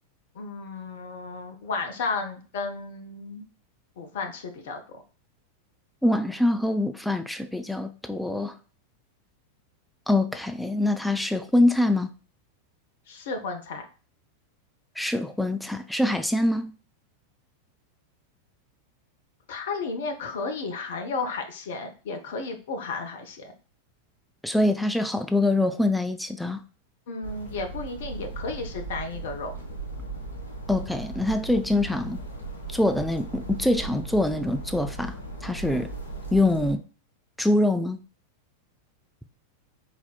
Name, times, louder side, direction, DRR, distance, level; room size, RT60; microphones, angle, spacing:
voice 1, 0.3-3.5 4.0-5.0 13.1-13.8 19.5-23.5 27.1-29.5 35.7-35.8, left 4 dB, 55° left, 0.8 m, -33 dB
voice 2, 6.0-8.5 10.1-12.1 15.0-16.7 24.4-26.6 30.7-32.2 32.7-35.9 36.3-36.8 37.4-38.0, left 1 dB, ahead, 0.4 m, -24 dB
sound 1, 27.2-36.7, right 2 dB, 75° left, 1.2 m, -37 dB
4.2 x 4.0 x 2.2 m
figure-of-eight pair, 90°, 0 cm